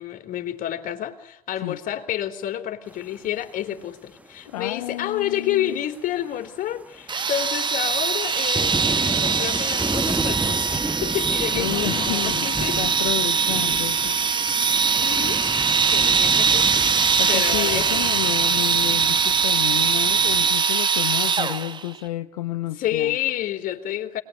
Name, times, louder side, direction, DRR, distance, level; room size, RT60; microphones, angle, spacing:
voice 1, 0.0-12.8 15.0-15.4 15.8-16.9 17.3-17.9 22.8-24.2, left 11 dB, 45° left, 6 dB, 3.7 m, -29 dB
sound 1, 2.9-3.1 4.2-4.3 4.7-4.8 5.0-5.2 5.5-20.5, right 2 dB, 5° right, 1.3 m, -33 dB
voice 2, 4.5-5.8 11.5-14.2 17.2-23.2, left 14 dB, 70° left, 7 dB, 1.2 m, -30 dB
sound 2, 7.1-21.8, right 5 dB, 25° right, 1.7 m, -22 dB
28.0 x 21.0 x 9.8 m, 0.80 s
hypercardioid pair, 70°, 19 cm